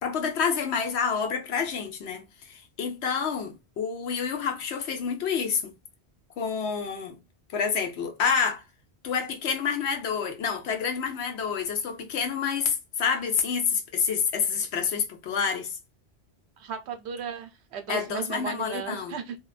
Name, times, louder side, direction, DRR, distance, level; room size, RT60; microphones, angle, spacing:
voice 1, 0.0-5.7 6.4-7.2 7.5-8.6 9.0-15.8 17.9-19.2, left 6 dB, 85° left, 1.0 m, -28 dB
voice 2, 16.6-19.4, right 7 dB, 85° right, 0.9 m, -35 dB
2.7 x 2.2 x 2.3 m
omnidirectional pair, 1.1 m